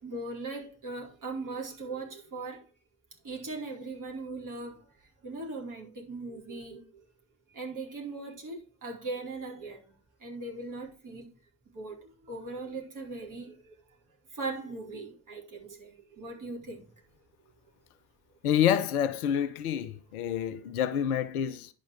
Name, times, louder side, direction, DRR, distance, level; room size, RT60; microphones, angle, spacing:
voice 1, 0.0-2.6 3.2-4.7 5.2-6.8 7.6-9.8 10.2-11.3 11.7-12.0 12.3-13.5 14.4-15.9 16.2-16.8, right 3 dB, 45° right, 4.6 m, -39 dB
voice 2, 18.4-21.7, left 9 dB, 75° left, 0.9 m, -28 dB
10.5 x 5.2 x 4.8 m
figure-of-eight pair, 45°, 45 cm